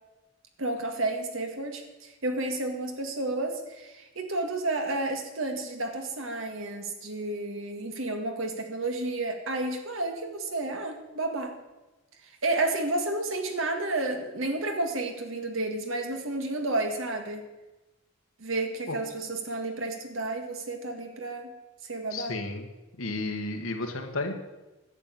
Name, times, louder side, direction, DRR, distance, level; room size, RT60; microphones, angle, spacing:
voice 1, 0.6-11.5 12.4-17.5 18.4-21.5 21.8-22.3, right 2 dB, 75° right, 4 dB, 1.9 m, -31 dB
voice 2, 22.1-22.7 23.0-24.3, left 2 dB, 85° left, 4 dB, 1.7 m, -32 dB
11.0 x 7.6 x 8.7 m, 1.1 s
head